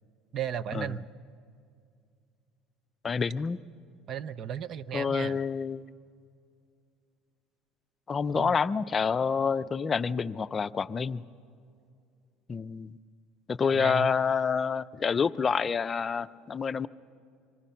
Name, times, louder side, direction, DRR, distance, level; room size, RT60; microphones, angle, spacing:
voice 1, 0.3-1.0 4.1-5.4 8.3-8.6 13.8-14.2, right 9 dB, 50° right, 16 dB, 0.7 m, -35 dB
voice 2, 3.0-3.6 4.9-5.8 8.1-11.2 12.5-12.9 13.5-16.9, left 6 dB, 30° left, 14 dB, 0.5 m, -28 dB
25.5 x 25.0 x 5.8 m, 2.3 s
supercardioid pair, 105°, 0 cm